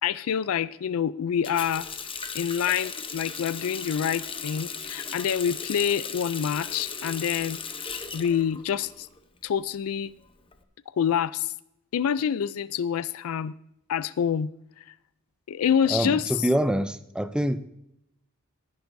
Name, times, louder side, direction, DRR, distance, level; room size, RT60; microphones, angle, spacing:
voice 1, 0.0-1.9 2.3-7.6 8.1-9.1 9.4-10.1 11.0-11.5 11.9-13.5 13.9-14.5 14.8-14.9 15.5-16.5, left 8 dB, 80° left, 17 dB, 0.4 m, -27 dB
Water tap faucet, 1.4-9.2 9.5-10.5, left 6 dB, 25° left, 0.8 m, -36 dB
voice 2, 15.9-17.6, right 1 dB, 5° right, 12 dB, 0.5 m, -25 dB
18.5 x 10.5 x 2.6 m, 0.80 s
head